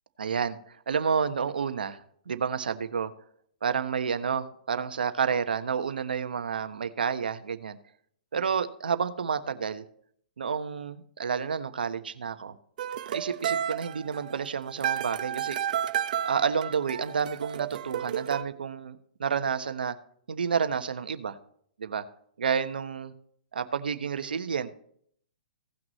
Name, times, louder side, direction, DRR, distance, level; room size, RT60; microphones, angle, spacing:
voice 1, 0.2-2.0 2.3-3.1 3.6-7.8 8.3-9.8 10.4-12.5 13.1-15.6 16.2-19.9 20.3-21.4 21.8-22.0 22.4-23.1 23.5-24.9, right 6 dB, 80° right, 10 dB, 1.1 m, -30 dB
sound 1, 12.8-18.4, right 10 dB, 60° right, 0.7 m, -32 dB
17.0 x 6.1 x 3.2 m, 0.64 s
hypercardioid pair, 135°, 5 cm